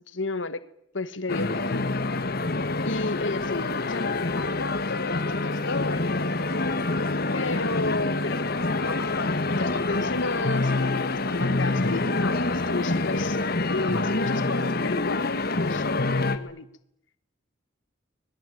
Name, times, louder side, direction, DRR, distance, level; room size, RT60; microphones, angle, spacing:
voice 1, 0.1-0.6 0.9-1.9 2.8-6.5 7.3-16.7, left 3 dB, 85° left, 1.5 m, -33 dB
sound 1, 1.3-16.4, left 2 dB, 55° left, 1.8 m, -26 dB
25.5 x 20.5 x 9.3 m
head